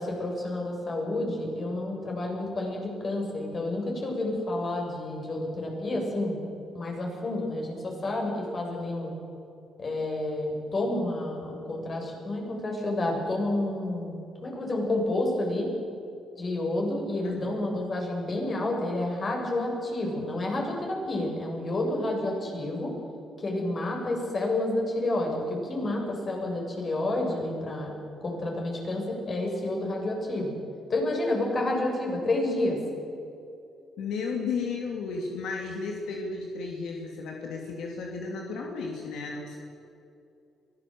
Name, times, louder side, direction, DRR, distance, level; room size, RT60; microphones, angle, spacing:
voice 1, 0.0-6.4 6.7-9.1 9.8-14.2 14.4-15.7 16.4-22.9 23.4-27.9 28.2-30.5 30.9-32.8, left 2 dB, 40° left, 0 dB, 7.3 m, -29 dB
voice 2, 17.2-17.6 34.0-39.6, left 4 dB, 80° left, 1 dB, 2.8 m, -34 dB
23.5 x 17.0 x 7.9 m, 2.7 s
cardioid pair, 90°, 0 cm